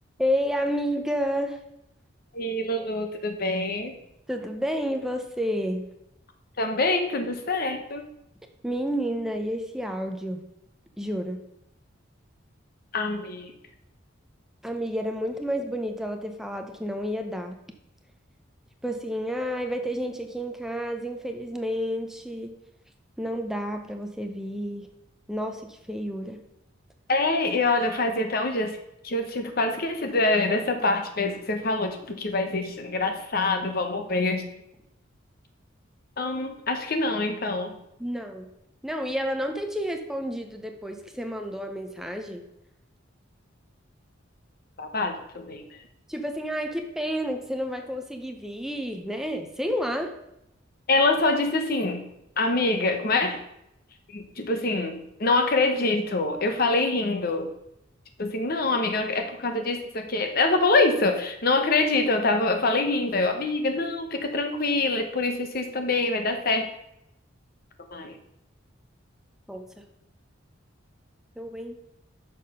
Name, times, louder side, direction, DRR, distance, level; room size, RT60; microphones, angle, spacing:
voice 1, 0.2-1.6 4.3-5.8 8.6-10.4 11.0-11.4 14.6-17.6 18.8-22.5 23.2-24.9 25.3-26.4 38.0-38.5 38.8-42.4 46.1-50.1 69.5-69.9 71.4-71.8, equal, ahead, 5 dB, 0.6 m, -30 dB
voice 2, 2.3-3.9 6.6-8.0 12.9-13.5 27.1-28.8 29.0-34.5 36.2-37.8 44.8-45.9 50.9-52.1 52.4-53.4 54.1-57.5 58.2-66.7 67.9-68.2, left 2 dB, 50° left, 6 dB, 0.9 m, -25 dB
6.6 x 5.7 x 5.5 m, 0.82 s
head